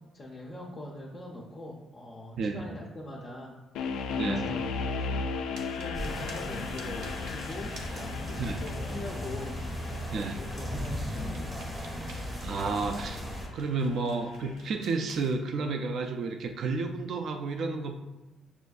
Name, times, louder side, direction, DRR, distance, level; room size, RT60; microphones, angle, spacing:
voice 1, 0.0-3.5 4.2-5.3 5.7-9.5 10.1-11.7, left 1 dB, 20° left, -3 dB, 0.4 m, -42 dB
sound 1, 3.7-14.8, left 4 dB, 90° left, 0.3 m, -37 dB
voice 2, 4.2-4.5 8.4-8.6 10.1-10.4 12.4-13.2 13.5-18.0, right 4 dB, 45° right, 5 dB, 0.3 m, -31 dB
sound 2, 5.5-15.4, right 2 dB, 65° right, 0.8 m, -53 dB
sound 3, 5.9-13.5, left 1 dB, 10° right, 0.7 m, -36 dB
6.9 x 2.5 x 2.3 m, 1.1 s
cardioid pair, 180°, 0 cm